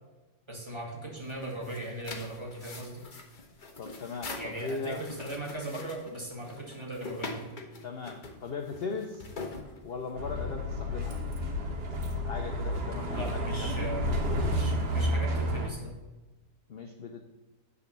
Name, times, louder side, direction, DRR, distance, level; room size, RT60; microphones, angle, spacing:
voice 1, 0.5-3.0 4.4-7.5 13.1-15.9, right 1 dB, 15° right, -2 dB, 1.9 m, -39 dB
sound 1, 1.2-10.3, left 3 dB, 35° left, 1.0 m, -43 dB
voice 2, 3.8-5.0 7.8-9.3 9.8-11.2 12.2-14.4 16.7-17.2, left 4 dB, 50° left, 4 dB, 0.7 m, -38 dB
Bus, 10.2-15.7, equal, 70° right, 1.8 m, -30 dB
9.4 x 4.1 x 6.7 m, 1.2 s
omnidirectional pair, 1.8 m